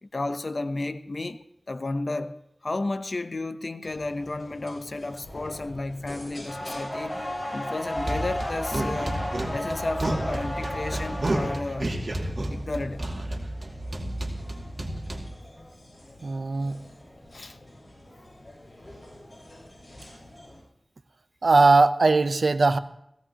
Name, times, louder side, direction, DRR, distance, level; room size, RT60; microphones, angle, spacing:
voice 1, 0.0-1.4 1.7-7.2 7.5-9.2 9.5-12.0 12.5-13.1 17.3-17.6, left 2 dB, 65° left, 0.8 m, -32 dB
sound 1, 3.8-20.6, left 1 dB, 40° left, 7.1 m, -48 dB
sound 2, 6.5-11.6, left 1 dB, 20° left, 5.3 m, -33 dB
sound 3, 7.9-15.2, right 1 dB, 65° right, 2.3 m, -31 dB
voice 2, 16.2-16.8 21.4-22.8, right 3 dB, 90° right, 0.6 m, -20 dB
17.5 x 17.0 x 2.9 m
wide cardioid pair, 45°, 0 cm